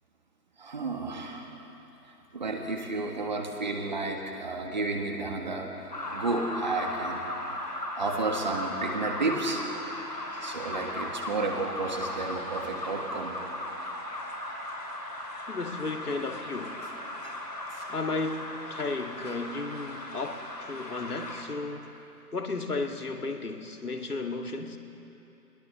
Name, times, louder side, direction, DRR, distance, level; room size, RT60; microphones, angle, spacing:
voice 1, 0.6-1.5 2.0-7.3 7.6-9.6 10.4-13.4 17.2-17.3 17.7-17.8, right 3 dB, 30° right, 2 dB, 1.6 m, -32 dB
sound 1, 5.9-21.4, left 1 dB, 90° left, 5.4 m, -37 dB
voice 2, 15.5-16.8 17.9-21.9 22.3-24.8, left 3 dB, 65° left, 4 dB, 2.1 m, -34 dB
21.0 x 20.5 x 6.9 m, 2.9 s
figure-of-eight pair, 160°, 48 cm